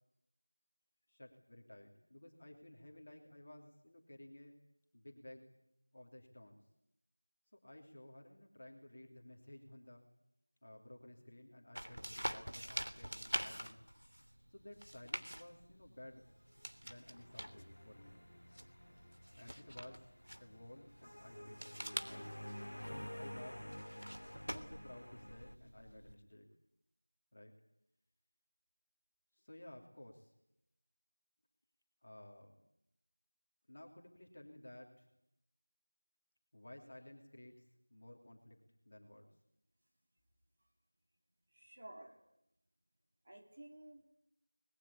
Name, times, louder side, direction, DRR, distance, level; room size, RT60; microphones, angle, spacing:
voice 1, 1.1-4.6 4.9-5.5 5.9-6.6 7.6-10.0 10.6-13.8 14.5-16.2 16.8-18.2 19.4-20.1 20.4-21.7 22.0-22.3 22.8-23.7 24.5-26.5 27.3-27.5 29.3-30.3 32.0-32.6 33.7-35.1 36.5-38.6 38.8-39.3, left 1 dB, 30° left, 1 dB, 2.9 m, -55 dB
sound 1, 11.7-26.1, equal, 90° right, 3.0 m, -47 dB
sound 2, 16.6-25.6, equal, 80° left, 1.1 m, -51 dB
voice 2, 41.5-42.2 43.2-44.0, right 1 dB, 25° right, 0 dB, 2.4 m, -54 dB
26.0 x 20.5 x 8.6 m, 0.82 s
figure-of-eight pair, 175°, 0 cm